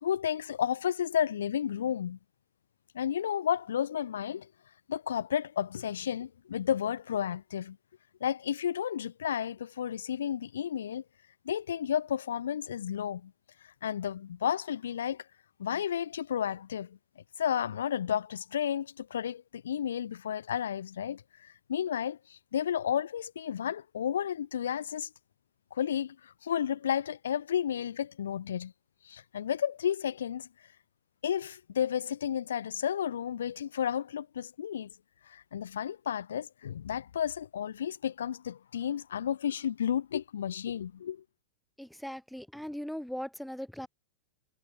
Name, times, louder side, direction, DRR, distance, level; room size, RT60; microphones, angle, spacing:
voice 1, 0.0-2.2 2.9-4.5 4.9-7.8 8.2-11.0 11.5-13.3 13.8-15.2 15.6-17.0 17.4-25.1 25.7-28.7 29.0-30.5 31.2-34.9 35.3-41.2, left 9 dB, 65° left, 3.9 m, -32 dB
voice 2, 41.8-43.9, equal, ahead, 3.8 m, -39 dB
figure-of-eight pair, 90°, 0 cm